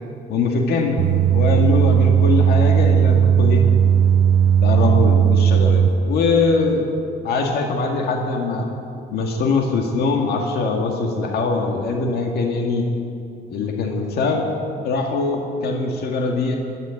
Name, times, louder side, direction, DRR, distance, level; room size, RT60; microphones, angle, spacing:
voice 1, 0.3-3.6 4.6-7.0 7.2-8.7 9.1-12.9 13.5-14.5 14.8-16.6, left 3 dB, 70° left, 2 dB, 1.9 m, -22 dB
sound 1, 1.0-5.9, right 8 dB, 70° right, 0.8 m, -16 dB
12.0 x 12.0 x 9.2 m, 2.5 s
cardioid pair, 110°, 17 cm